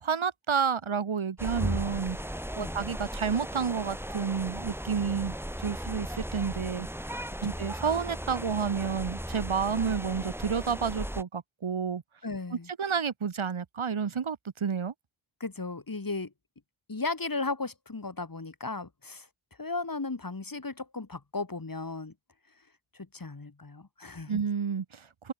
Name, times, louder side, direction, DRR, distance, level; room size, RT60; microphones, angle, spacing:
voice 1, 0.0-2.2 2.6-6.9 7.4-12.0 12.8-14.9 24.3-25.3, right 6 dB, 75° right, 2.5 m, -30 dB
sound 1, 1.4-11.2, equal, 5° right, 2.9 m, -36 dB
voice 2, 12.2-12.7 15.4-16.3 16.9-19.3 19.6-22.1 23.1-24.4, left 3 dB, 45° left, 5.1 m, -35 dB
cardioid pair, 45°, 48 cm